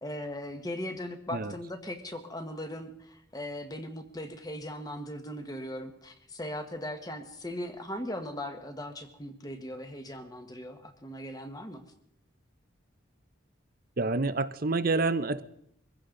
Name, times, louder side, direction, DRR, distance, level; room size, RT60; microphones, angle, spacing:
voice 1, 0.0-11.8, left 1 dB, 20° left, 7 dB, 1.4 m, -39 dB
voice 2, 14.0-15.4, right 3 dB, 45° right, 12 dB, 0.7 m, -28 dB
24.0 x 15.5 x 3.9 m, 0.74 s
head